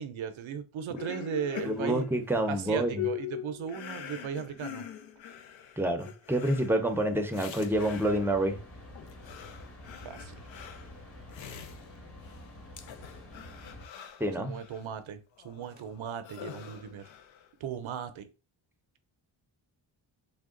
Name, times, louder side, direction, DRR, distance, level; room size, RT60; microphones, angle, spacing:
voice 1, 0.0-2.0 2.5-4.9 10.0-10.4 14.4-17.1 17.6-18.3, right 8 dB, 70° right, 0.7 m, -37 dB
sound 1, 1.0-8.5 9.0-12.5 12.8-14.8 15.4-17.5, left 9 dB, 65° left, 0.6 m, -43 dB
voice 2, 1.7-3.1 5.8-8.6 14.2-14.5, right 1 dB, 5° right, 0.6 m, -28 dB
sound 2, 7.7-13.9, left 1 dB, 25° left, 1.2 m, -48 dB
3.5 x 2.2 x 3.7 m
cardioid pair, 90°, 50 cm